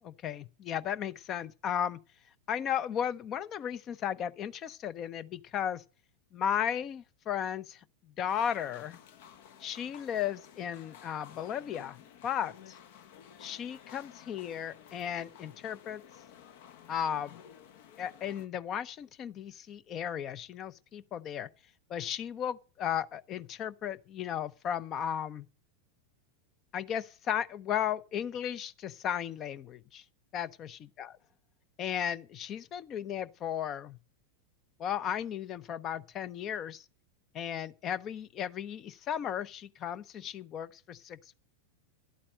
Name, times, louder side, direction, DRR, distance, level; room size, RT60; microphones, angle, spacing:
voice 1, 0.0-2.0 2.5-5.8 6.3-7.8 8.2-9.0 9.6-12.8 13.4-16.0 16.9-17.4 18.0-21.5 21.9-25.5 26.7-30.0 30.3-31.1 31.8-34.0 34.8-36.8 37.3-41.4, left 9 dB, 30° left, 0.7 m, -35 dB
sound 1, 8.3-18.5, left 9 dB, 50° left, 1.0 m, -54 dB
12.0 x 8.6 x 6.4 m
figure-of-eight pair, 90°, 0 cm